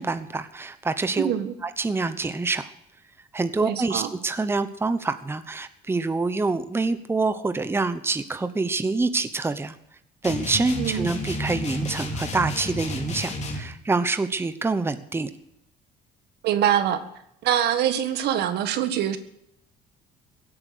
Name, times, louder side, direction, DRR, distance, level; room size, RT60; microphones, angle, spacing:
voice 1, 0.0-1.3 1.6-2.7 3.3-9.8 10.2-15.3, right 3 dB, 15° right, 11 dB, 0.9 m, -26 dB
voice 2, 1.2-1.5 3.6-4.1 10.8-11.1 16.4-17.0 17.4-19.2, right 10 dB, 75° right, 10 dB, 1.7 m, -24 dB
sound 1, 10.2-13.7, left 1 dB, 40° left, 3.3 m, -31 dB
16.5 x 8.8 x 8.2 m, 0.77 s
cardioid pair, 110°, 17 cm